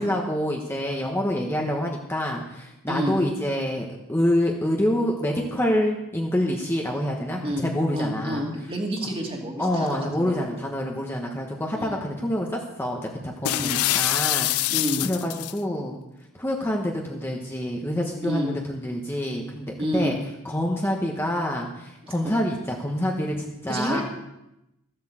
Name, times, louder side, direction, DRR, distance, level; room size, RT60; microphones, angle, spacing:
voice 1, 0.0-8.4 9.6-14.7 15.0-15.9 16.3-20.1 20.4-23.4 23.6-24.0, left 1 dB, 10° left, -1 dB, 1.2 m, -27 dB
voice 2, 7.9-10.5 11.7-12.0 13.5-13.8 14.7-15.1 18.2-18.5 19.8-20.2 22.0-22.3 23.7-24.0, equal, 25° right, 0 dB, 2.5 m, -29 dB
sound 1, 13.5-15.6, left 17 dB, 85° left, 0.4 m, -25 dB
13.5 x 7.9 x 7.5 m, 0.88 s
head